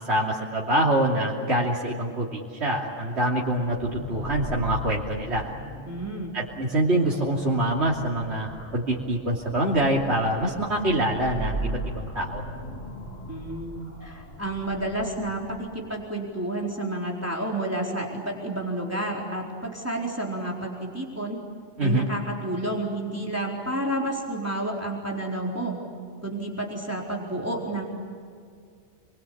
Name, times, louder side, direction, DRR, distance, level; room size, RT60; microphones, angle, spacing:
voice 1, 0.1-5.5 6.3-12.4 21.8-22.1, right 1 dB, 60° right, -4 dB, 3.3 m, -25 dB
sound 1, 3.5-16.0, right 1 dB, 75° left, 4.7 m, -38 dB
voice 2, 5.9-6.3 13.3-13.7 14.0-21.4 21.8-25.8 26.2-27.8, right 1 dB, 10° right, -2 dB, 4.3 m, -30 dB
30.0 x 23.0 x 8.6 m, 2.3 s
omnidirectional pair, 1.3 m